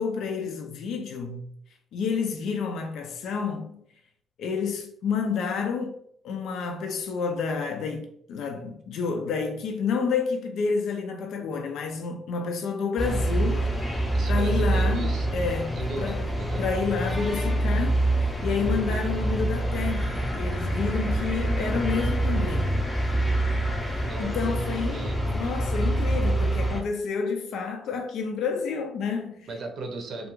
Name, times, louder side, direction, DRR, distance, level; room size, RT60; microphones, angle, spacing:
voice 1, 0.0-1.5 1.9-3.8 4.4-6.0 6.2-16.3 16.6-22.8 23.9-25.0 25.3-29.5, left 5 dB, 80° left, 0.4 m, -30 dB
sound 1, 13.0-26.8, right 1 dB, 15° left, 0.6 m, -26 dB
voice 2, 14.1-15.3 15.7-16.7 24.0-24.4 24.7-25.4 29.5-30.3, right 3 dB, 65° right, 0.6 m, -36 dB
2.4 x 2.3 x 3.0 m
cardioid pair, 90°, 0 cm